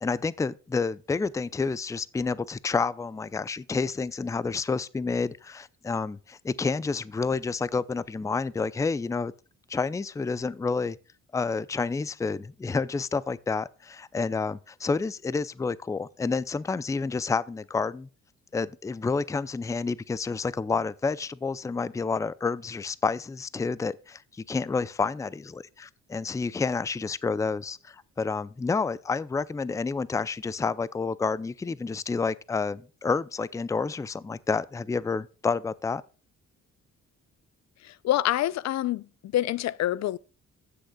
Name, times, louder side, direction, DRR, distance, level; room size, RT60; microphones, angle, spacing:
voice 1, 0.0-9.3 9.7-11.0 11.3-18.1 18.5-36.0, left 4 dB, 10° left, 0.4 m, -29 dB
voice 2, 37.8-39.0 39.3-40.2, left 13 dB, 65° left, 0.5 m, -26 dB
15.5 x 6.5 x 2.3 m
cardioid pair, 90°, 30 cm